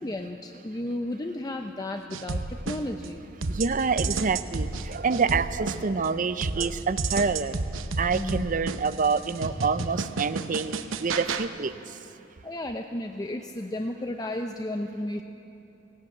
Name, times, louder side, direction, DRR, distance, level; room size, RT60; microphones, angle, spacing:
voice 1, 0.0-3.2 8.1-8.5 12.4-15.2, left 1 dB, 20° left, 4 dB, 0.6 m, -33 dB
sound 1, 2.1-3.1 3.4-6.1 6.4-11.5, right 3 dB, 75° right, 0.9 m, -31 dB
voice 2, 3.5-7.6 8.0-11.7, right 5 dB, 40° right, 13 dB, 0.6 m, -27 dB
18.5 x 17.5 x 8.6 m, 2.8 s
head